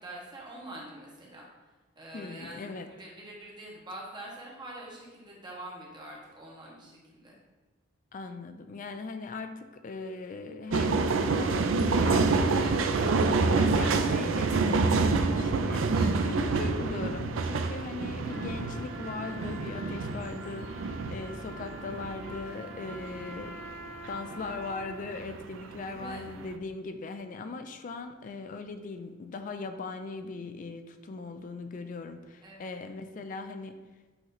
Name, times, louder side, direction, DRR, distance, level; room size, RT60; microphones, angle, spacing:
voice 1, 0.0-1.5 1.9-7.4 12.6-12.9 16.0-16.3 25.9-26.2 32.4-32.7, right 1 dB, 25° right, -4 dB, 1.4 m, -45 dB
voice 2, 2.1-2.9 8.1-12.7 13.1-23.8 24.1-33.8, left 3 dB, 40° left, 8 dB, 0.3 m, -39 dB
sound 1, 10.7-24.7 25.1-26.5, right 3 dB, 80° right, 0.4 m, -27 dB
Trumpet, 18.3-25.3, equal, 10° left, 0.8 m, -46 dB
7.8 x 3.0 x 4.0 m, 1.2 s
head